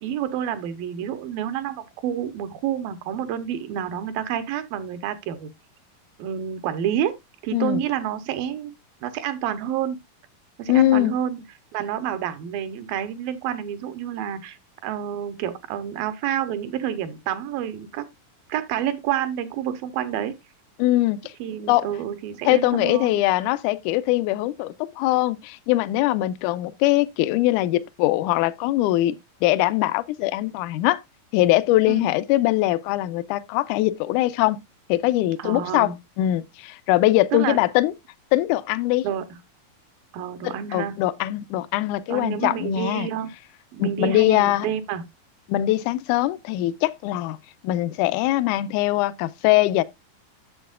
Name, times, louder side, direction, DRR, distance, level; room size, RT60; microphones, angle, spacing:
voice 1, 0.0-5.5 6.2-7.2 7.4-8.7 9.0-10.0 10.6-11.4 11.7-14.6 14.8-18.1 18.5-20.3 21.4-23.2 31.9-32.1 35.4-36.0 37.3-37.6 39.0-39.3 40.1-40.9 42.1-43.3 43.7-45.0, right 10 dB, 85° right, 2.7 m, -29 dB
voice 2, 10.7-11.1 20.8-21.3 21.7-21.9 22.4-31.0 31.3-34.6 34.9-35.9 36.2-37.9 38.3-39.1 40.4-43.1 43.8-44.7 45.5-47.4 47.6-49.8, left 16 dB, 85° left, 1.7 m, -22 dB
10.0 x 7.4 x 2.4 m
omnidirectional pair, 4.1 m